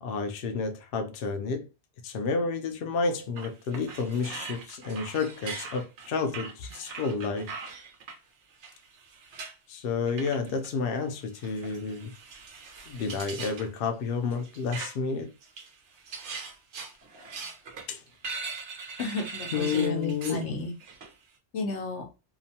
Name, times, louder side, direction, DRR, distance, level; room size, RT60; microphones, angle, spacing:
voice 1, 0.0-1.7 2.0-7.5 9.7-12.1 12.9-15.3 17.9-18.0 19.5-20.5, left 4 dB, 65° left, 0.7 m, -30 dB
sound 1, 3.4-8.2 8.6-9.5 10.1-10.7 11.3-13.7 14.3-15.1 15.4-20.4 20.8-21.1, right 4 dB, 90° right, 1.0 m, -41 dB
voice 2, 19.0-20.7 21.5-22.1, left 2 dB, 90° left, 1.0 m, -32 dB
2.8 x 2.1 x 2.7 m
omnidirectional pair, 1.2 m